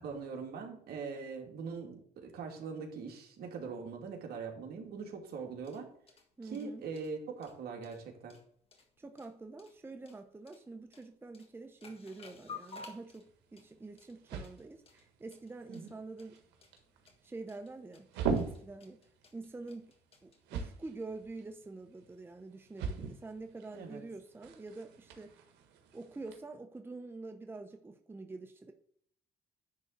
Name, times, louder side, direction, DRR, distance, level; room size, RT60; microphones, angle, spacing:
voice 1, 0.0-5.9 6.4-8.4 15.7-15.9 23.7-24.0, right 5 dB, 65° right, 1 dB, 2.5 m, -42 dB
sound 1, 5.4-20.6, left 4 dB, 35° left, 1.7 m, -55 dB
voice 2, 6.4-6.9 9.0-16.4 17.2-18.1 18.4-19.0 19.3-19.9 20.2-25.4 25.9-28.7, right 3 dB, 15° right, 6 dB, 0.7 m, -46 dB
sound 2, 13.0-26.4, right 5 dB, 85° right, 1.5 m, -43 dB
10.5 x 3.8 x 6.7 m, 0.62 s
cardioid pair, 110°, 17 cm